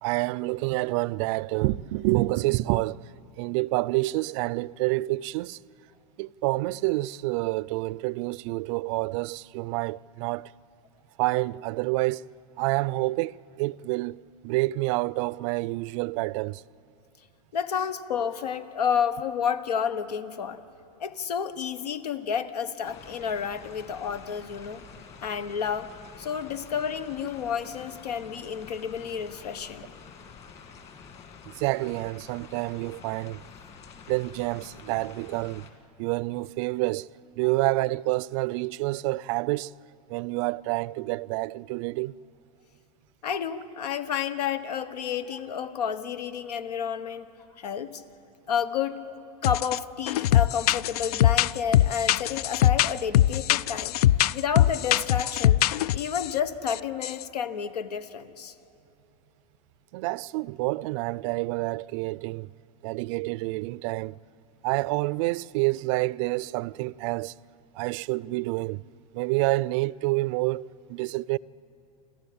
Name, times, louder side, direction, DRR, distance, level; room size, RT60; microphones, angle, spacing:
voice 1, 0.0-3.0 3.4-5.6 6.2-10.5 11.2-12.3 12.6-16.6 31.4-33.4 34.1-35.6 36.0-37.1 37.4-39.7 40.1-42.1 59.9-62.5 62.8-64.2 64.6-67.4 67.7-68.8 69.1-71.4, right 21 dB, 50° right, 0.4 m, -28 dB
voice 2, 17.5-20.6 21.0-24.8 25.2-25.9 26.2-29.9 43.2-47.3 47.6-48.0 48.5-49.2 49.4-54.0 54.3-55.6 55.9-58.5, left 7 dB, 85° left, 1.2 m, -30 dB
sound 1, 22.8-35.7, left 6 dB, 30° left, 2.2 m, -48 dB
sound 2, 49.4-49.8 50.1-56.3 56.7-56.8 57.0-57.2, left 13 dB, 70° left, 0.4 m, -22 dB
28.5 x 12.5 x 8.6 m
supercardioid pair, 130°, 20 cm